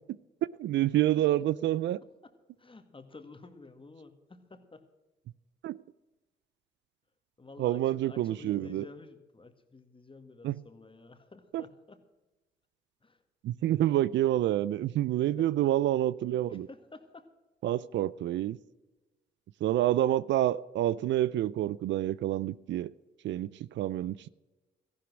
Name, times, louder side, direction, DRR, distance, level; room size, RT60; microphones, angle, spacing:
voice 1, 0.6-2.0 5.6-5.8 7.6-8.8 10.4-10.6 11.5-11.6 13.4-16.7 17.6-18.6 19.6-22.9 23.2-24.3, right 13 dB, 70° right, 0.4 m, -28 dB
voice 2, 2.6-4.9 7.4-12.0 13.0-13.2 15.4-15.5 16.5-17.3, left 3 dB, 25° left, 1.9 m, -50 dB
14.0 x 11.5 x 6.1 m
supercardioid pair, 50°, 20 cm